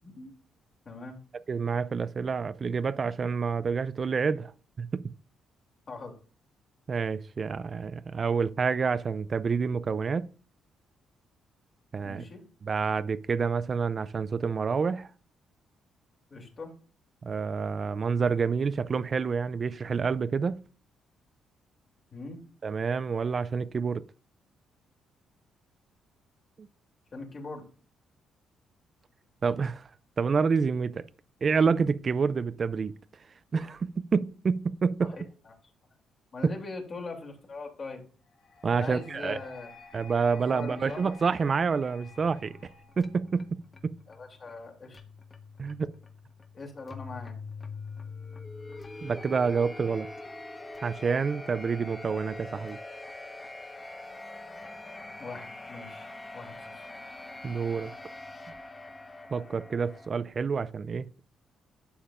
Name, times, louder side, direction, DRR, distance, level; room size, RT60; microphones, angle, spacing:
voice 1, 0.8-1.2 5.9-6.1 12.0-12.4 16.3-16.7 22.1-22.4 27.1-27.6 35.0-35.5 36.3-38.0 38.8-39.7 40.5-41.0 44.1-45.0 46.5-47.3 55.2-56.8, left 3 dB, 40° left, 2.8 m, -41 dB
voice 2, 1.5-4.5 4.8-5.0 6.9-10.3 11.9-12.2 12.6-15.1 17.2-20.6 22.6-24.0 26.6-26.7 29.4-29.9 30.2-31.0 31.4-32.9 33.5-35.1 38.6-39.4 39.9-42.5 43.0-43.9 45.6-45.9 49.0-50.1 50.8-52.8 57.4-57.9 59.3-61.1, right 5 dB, 40° right, 0.4 m, -28 dB
sound 1, 38.4-43.4, left 2 dB, 70° left, 3.5 m, -52 dB
sound 2, 42.0-60.1, left 3 dB, 25° left, 1.1 m, -44 dB
11.5 x 7.1 x 2.5 m
cardioid pair, 90°, 0 cm